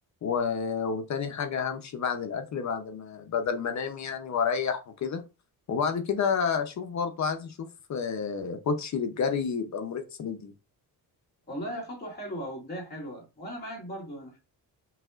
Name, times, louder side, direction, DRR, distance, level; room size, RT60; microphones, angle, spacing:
voice 1, 0.2-5.2 5.7-10.5, left 6 dB, 45° left, 0.7 m, -30 dB
voice 2, 11.5-14.4, equal, 25° left, 2.2 m, -37 dB
5.8 x 2.8 x 2.4 m
cardioid pair, 130°, 39 cm